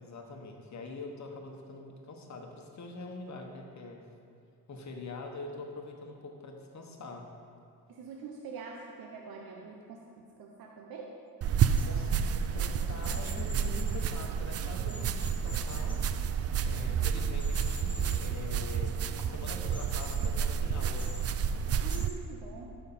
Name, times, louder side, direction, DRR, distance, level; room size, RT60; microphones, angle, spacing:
voice 1, 0.0-4.1 4.7-7.3 11.9-16.0 16.6-21.1, left 2 dB, 45° left, 2 dB, 1.3 m, -44 dB
voice 2, 7.9-11.2 21.8-22.7, right 4 dB, 70° right, 0 dB, 0.9 m, -45 dB
sound 1, 11.4-22.1, right 7 dB, 40° right, 0.4 m, -30 dB
sound 2, 11.8-11.9 13.0-14.0 14.9-15.9 17.4-18.2 19.7-20.3 21.0-21.2 21.9-22.1, left 2 dB, 10° left, 1.4 m, -46 dB
12.5 x 5.6 x 4.3 m, 2.5 s
cardioid pair, 85°, 38 cm